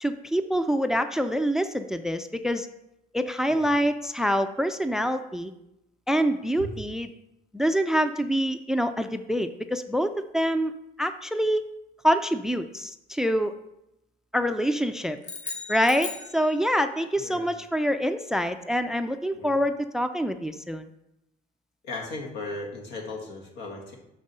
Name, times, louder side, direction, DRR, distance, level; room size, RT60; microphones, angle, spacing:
voice 1, 0.0-2.7 3.1-5.5 6.1-7.1 7.5-10.7 11.0-11.6 12.0-13.5 14.3-15.2 15.7-20.9, equal, 5° right, 10 dB, 0.3 m, -26 dB
sound 1, 15.2-17.0, left 4 dB, 45° left, 1.3 m, -38 dB
voice 2, 17.2-17.5 19.3-19.5 21.8-23.9, left 2 dB, 85° left, 0 dB, 1.8 m, -37 dB
6.0 x 5.0 x 5.4 m, 0.85 s
cardioid pair, 110°, 17 cm